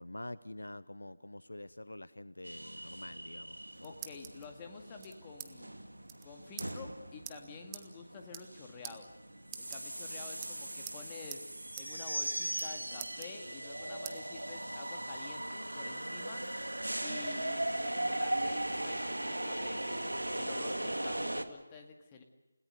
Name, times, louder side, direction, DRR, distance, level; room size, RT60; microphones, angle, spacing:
voice 1, 0.0-3.6, left 1 dB, 70° left, 17 dB, 0.7 m, -46 dB
sound 1, 2.4-21.4, right 1 dB, 75° right, 1.9 m, -39 dB
sound 2, 3.6-4.5 5.0-5.5 5.8-5.9 6.1-6.3 6.6-6.7 7.3-7.4 7.7-7.9 8.2-8.6 8.8-9.0 9.5-10.1 10.4-11.0 11.3-11.4 11.8-11.9 12.2-12.7 13.0-13.7 14.1-14.2 14.7-15.6, right 13 dB, 15° right, 1.0 m, -46 dB
voice 2, 3.8-5.7 6.2-9.1 9.6-11.5 11.8-16.4 17.0-22.2, left 5 dB, 15° left, 3 dB, 2.1 m, -50 dB
29.5 x 18.0 x 6.7 m, 1.1 s
figure-of-eight pair, 160°, 0 cm